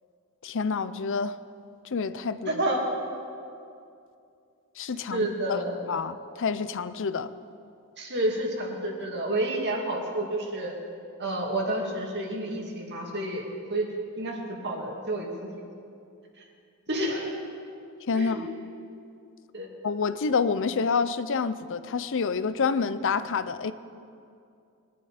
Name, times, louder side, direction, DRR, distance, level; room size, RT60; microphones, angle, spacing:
voice 1, 0.4-1.4 1.9-2.6 4.8-7.3 18.1-18.5 19.8-23.7, left 5 dB, 60° left, 13 dB, 0.6 m, -28 dB
voice 2, 2.5-2.8 5.1-5.8 8.0-10.7 11.2-13.4 13.7-13.9 14.2-15.5 16.9-17.4 18.1-18.4 19.5-19.7, right 1 dB, 50° right, 0 dB, 2.5 m, -29 dB
22.0 x 11.5 x 5.0 m, 2.5 s
head